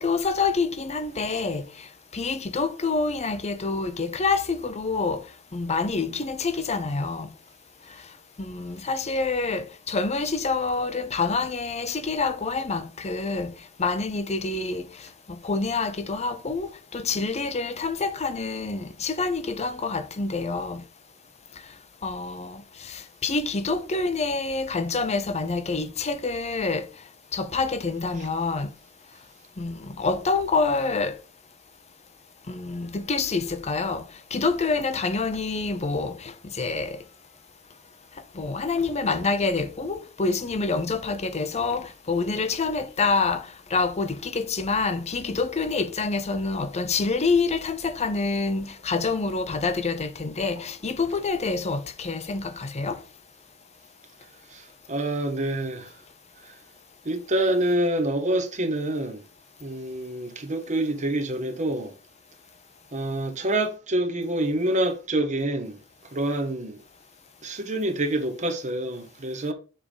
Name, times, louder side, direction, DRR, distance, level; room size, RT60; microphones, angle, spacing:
voice 1, 0.0-5.3 5.5-7.3 8.4-13.5 13.8-20.8 22.0-26.9 27.3-28.7 29.6-31.2 32.5-34.0 34.3-37.0 38.3-53.0, left 4 dB, 30° left, 0.6 m, -27 dB
voice 2, 54.5-55.9 56.4-56.5 57.0-59.2 59.6-61.9 62.9-65.8 66.1-66.8 67.4-69.5, right 1 dB, 35° right, 1.0 m, -27 dB
7.1 x 3.7 x 5.0 m
head